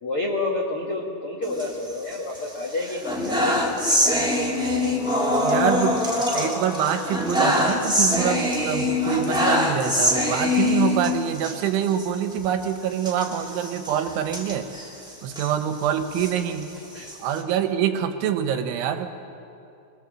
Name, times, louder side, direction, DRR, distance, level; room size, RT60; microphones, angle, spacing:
voice 1, 0.0-4.1 16.9-17.1, left 2 dB, 85° left, -1 dB, 1.2 m, -29 dB
sound 1, 1.4-2.4 2.8-11.5 11.9-12.1 12.3-12.4 13.0-15.5 16.0-17.4, left 1 dB, 5° right, 0.3 m, -24 dB
voice 2, 5.4-14.7 15.2-16.7 17.2-19.1, right 9 dB, 75° right, 7 dB, 3.2 m, -25 dB
26.0 x 21.5 x 7.5 m, 2.7 s
omnidirectional pair, 5.8 m